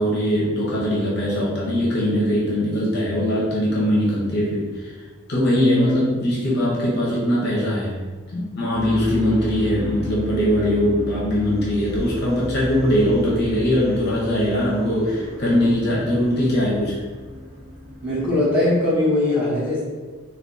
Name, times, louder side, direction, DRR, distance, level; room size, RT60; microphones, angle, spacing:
voice 1, 0.0-4.9 5.3-8.0 8.3-17.0, equal, 50° left, -5 dB, 0.6 m, -21 dB
sound 1, 8.7-18.6, left 1 dB, 85° right, 0.8 m, -34 dB
voice 2, 18.0-19.8, left 1 dB, 5° right, -11 dB, 1.0 m, -20 dB
3.5 x 2.2 x 2.5 m, 1.4 s
head